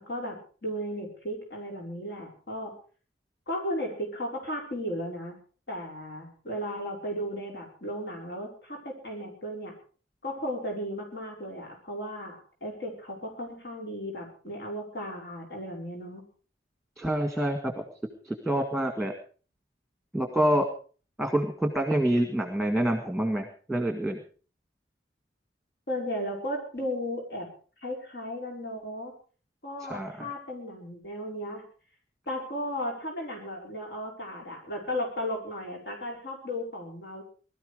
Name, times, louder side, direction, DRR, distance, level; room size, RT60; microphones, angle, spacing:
voice 1, 0.0-2.7 3.5-5.3 5.7-9.7 10.2-16.2 25.9-27.5 27.8-29.1 29.6-31.6 32.3-37.2, equal, 65° left, 1 dB, 5.2 m, -35 dB
voice 2, 17.0-17.7 18.3-19.1 20.1-20.7 21.2-24.2 29.8-30.3, right 1 dB, ahead, 4 dB, 1.8 m, -27 dB
20.5 x 13.0 x 5.0 m, 0.40 s
head